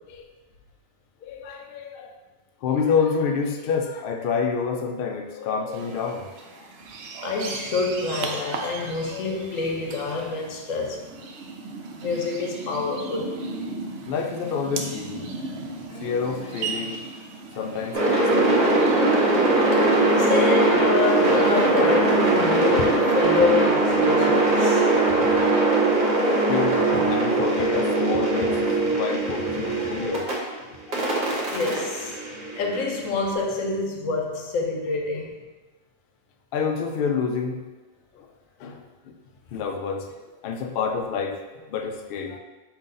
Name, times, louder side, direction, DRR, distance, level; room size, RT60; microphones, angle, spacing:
voice 1, 1.2-2.1 2.6-6.7 9.1-9.4 14.1-15.4 15.9-17.1 17.5-20.3 21.0-21.1 24.9-25.2 26.2-31.0 31.2-31.4 36.5-37.6 38.2-38.3 38.6-39.1 39.5-42.4, left 5 dB, 65° left, 5 dB, 0.5 m, -29 dB
sound 1, 5.7-23.2, right 3 dB, 60° right, 0.7 m, -36 dB
voice 2, 7.2-11.1 12.0-13.3 20.2-24.8 25.2-25.4 29.6-29.7 31.5-32.2 32.5-35.3, left 4 dB, 85° left, 1 dB, 1.1 m, -27 dB
sound 2, 17.9-30.3 30.9-33.0, right 2 dB, 40° right, 1.0 m, -21 dB
5.2 x 2.6 x 3.8 m, 1.2 s
omnidirectional pair, 1.4 m